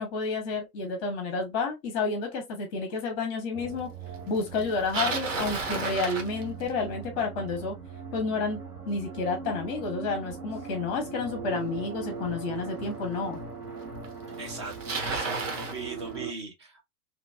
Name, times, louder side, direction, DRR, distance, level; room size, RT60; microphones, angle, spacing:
voice 1, 0.0-3.9 4.3-7.8 8.1-13.4, left 4 dB, 20° left, 0.7 m, -30 dB
sound 1, 3.5-16.3, right 5 dB, 85° right, 1.7 m, -40 dB
Bicycle, 4.6-6.9 12.0-12.1 12.9-13.0 14.0-14.1 14.3-15.8, right 4 dB, 55° right, 0.9 m, -32 dB
voice 2, 14.4-16.8, right 4 dB, 20° right, 0.4 m, -39 dB
3.0 x 2.4 x 2.2 m
figure-of-eight pair, 115°, 44 cm